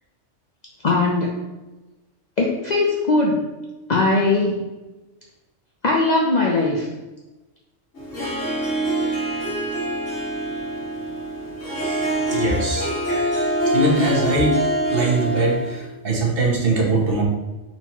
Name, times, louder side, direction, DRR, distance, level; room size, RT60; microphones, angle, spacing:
voice 1, 0.8-1.3 2.4-3.4 3.9-4.6 5.8-6.9 13.1-13.2, left 2 dB, 55° left, -2 dB, 0.5 m, -20 dB
Harp, 7.9-15.8, right 1 dB, 80° left, 1.8 m, -25 dB
voice 2, 12.3-12.9 13.7-14.6 14.9-17.2, right 2 dB, 55° right, -1 dB, 1.1 m, -21 dB
4.3 x 4.2 x 2.9 m, 1.1 s
omnidirectional pair, 1.2 m